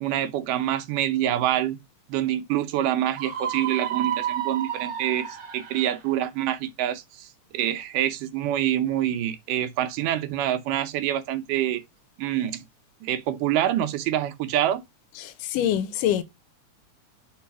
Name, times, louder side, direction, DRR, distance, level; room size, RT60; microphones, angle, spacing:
voice 1, 0.0-1.8 2.1-11.8 12.2-12.6 13.0-14.8, right 11 dB, 85° right, 2.2 m, -26 dB
Screaming, 3.1-6.1, right 11 dB, 45° right, 1.5 m, -31 dB
voice 2, 15.2-16.2, left 11 dB, 90° left, 2.4 m, -25 dB
4.7 x 4.6 x 5.7 m
omnidirectional pair, 3.7 m